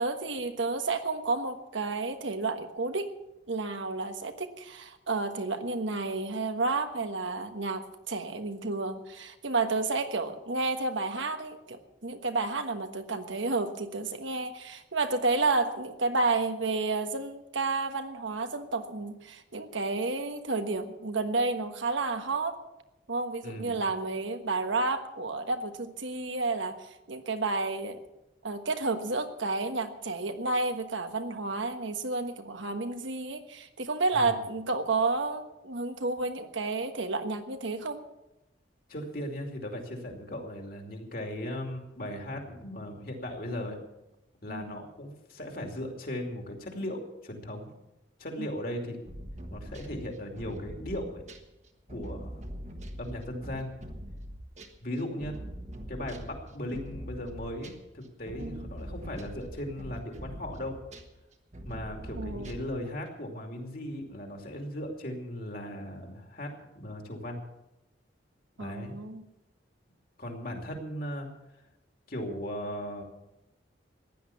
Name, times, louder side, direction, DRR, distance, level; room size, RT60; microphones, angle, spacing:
voice 1, 0.0-3.1 3.5-22.6 23.1-28.0 28.4-38.0 44.5-44.8 48.4-48.5 58.4-58.7 62.2-62.5 68.6-69.2, right 3 dB, 80° right, 7 dB, 1.4 m, -31 dB
voice 2, 23.4-23.8 34.1-34.4 38.9-43.8 44.4-47.7 48.2-49.0 49.5-51.2 51.9-52.4 53.0-53.7 54.8-55.4 55.9-60.8 61.6-67.4 68.6-68.9 70.2-71.3 72.1-73.0, left 1 dB, 50° left, 3 dB, 2.7 m, -37 dB
sound 1, 49.1-54.8 55.2-57.9 58.3-61.2 61.5-62.8, equal, 35° right, 1.4 m, -42 dB
15.5 x 10.5 x 7.1 m, 0.93 s
head